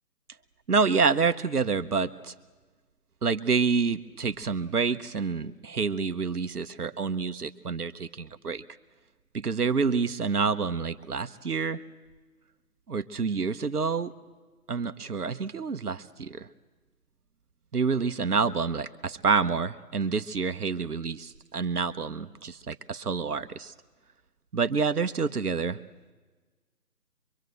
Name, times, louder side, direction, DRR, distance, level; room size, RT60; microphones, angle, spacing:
voice 1, 0.7-2.3 3.2-8.6 9.3-11.8 12.9-14.1 14.7-16.5 17.7-23.7 24.5-25.8, right 5 dB, 65° right, 11 dB, 1.1 m, -28 dB
24.0 x 24.0 x 7.9 m, 1.3 s
figure-of-eight pair, 160°, 48 cm